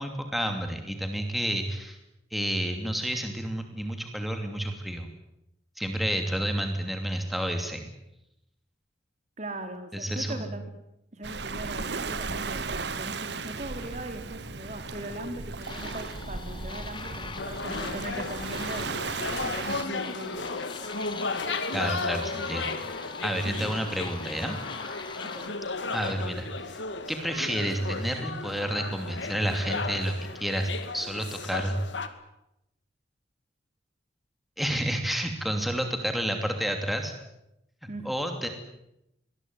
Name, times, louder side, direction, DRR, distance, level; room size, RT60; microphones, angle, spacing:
voice 1, 0.0-2.0 2.3-5.1 5.8-7.9 9.9-10.5 21.7-22.8 23.2-24.6 25.9-26.8 27.1-31.8 34.6-37.1 38.0-38.5, equal, ahead, 5 dB, 2.9 m, -30 dB
voice 2, 9.4-10.6 11.1-19.1 19.5-20.5 23.4-23.7 25.3-25.5 37.9-38.1, right 1 dB, 40° right, 7 dB, 3.3 m, -39 dB
Waves surf, 11.2-19.8, right 4 dB, 60° right, 1.2 m, -36 dB
sound 1, 15.6-25.5, left 4 dB, 25° left, 2.2 m, -42 dB
sound 2, 17.4-32.1, left 3 dB, 70° left, 2.4 m, -35 dB
24.0 x 20.5 x 9.7 m, 0.85 s
head